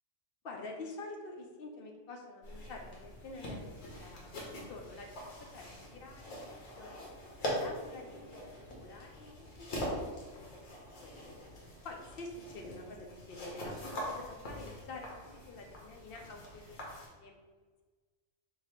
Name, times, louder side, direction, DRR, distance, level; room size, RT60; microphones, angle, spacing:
voice 1, 0.4-4.4 4.7-5.1 5.4-7.0 7.5-10.0 10.3-10.6 11.0-11.1 11.8-17.4, left 2 dB, 60° left, 2 dB, 0.7 m, -48 dB
sound 1, 2.4-17.1, equal, 80° left, 1.4 m, -43 dB
3.9 x 2.7 x 4.3 m, 1.4 s
omnidirectional pair, 1.3 m